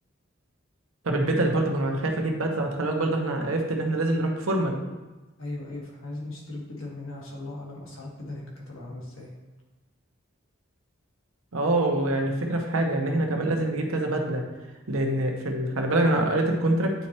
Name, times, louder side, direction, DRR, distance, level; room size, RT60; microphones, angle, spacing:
voice 1, 1.0-4.8 11.5-14.4 14.9-16.9, right 1 dB, 90° right, 2 dB, 1.0 m, -25 dB
voice 2, 5.4-9.3, left 2 dB, 85° left, -3 dB, 1.6 m, -38 dB
9.2 x 4.3 x 3.0 m, 1.2 s
head